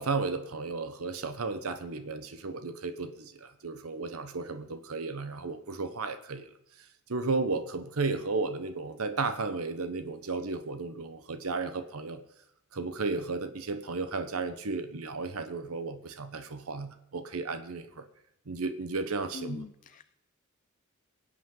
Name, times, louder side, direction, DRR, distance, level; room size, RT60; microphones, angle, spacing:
voice 1, 0.0-6.5 7.1-12.2 12.7-18.0 18.5-19.7, right 3 dB, 80° right, 9 dB, 1.0 m, -34 dB
voice 2, 19.3-20.0, left 4 dB, 35° left, 12 dB, 0.4 m, -41 dB
23.5 x 8.4 x 3.8 m, 0.81 s
head